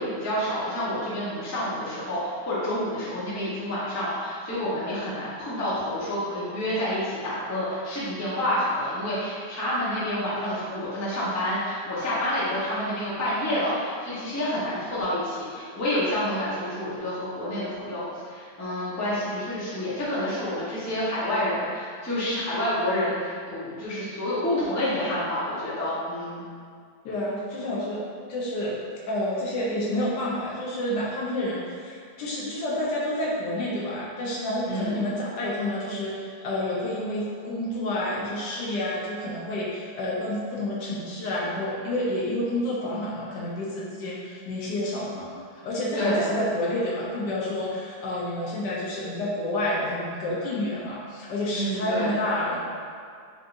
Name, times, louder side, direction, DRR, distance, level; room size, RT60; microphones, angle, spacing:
voice 1, 0.0-26.4 34.6-35.0 46.0-46.3 51.5-52.1, left 1 dB, 15° left, -10 dB, 0.7 m, -28 dB
voice 2, 27.0-28.0 28.3-28.8 29.1-52.6, left 1 dB, 90° left, -5 dB, 1.3 m, -29 dB
4.1 x 3.4 x 2.6 m, 2.2 s
omnidirectional pair, 1.8 m